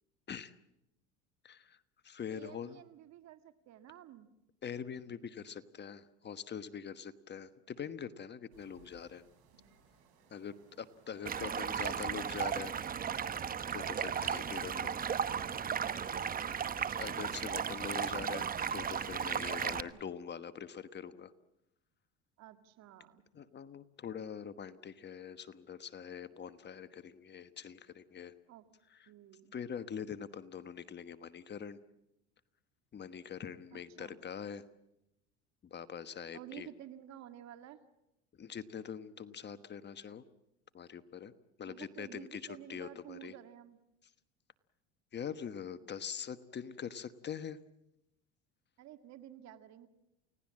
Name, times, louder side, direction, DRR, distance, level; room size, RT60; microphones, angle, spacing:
voice 1, 1.4-2.8 4.6-9.2 10.3-12.7 13.7-15.0 17.0-21.3 23.3-28.3 28.9-29.1 29.5-31.8 32.9-34.6 35.6-36.7 38.4-40.2 40.7-41.3 41.6-43.3 45.1-47.6, left 7 dB, 30° left, 12 dB, 1.3 m, -43 dB
voice 2, 2.3-4.3 11.1-12.0 14.1-16.6 19.6-20.0 22.4-23.2 28.5-28.6 29.1-29.5 33.7-34.2 36.3-37.8 41.6-43.8 48.8-49.9, right 11 dB, 55° right, 9 dB, 1.9 m, -53 dB
sound 1, 8.5-19.4, right 5 dB, 75° right, 7.0 m, -62 dB
Stream, 11.3-19.8, right 7 dB, 25° right, 1.0 m, -35 dB
29.5 x 17.5 x 7.6 m, 0.89 s
supercardioid pair, 100°, 33 cm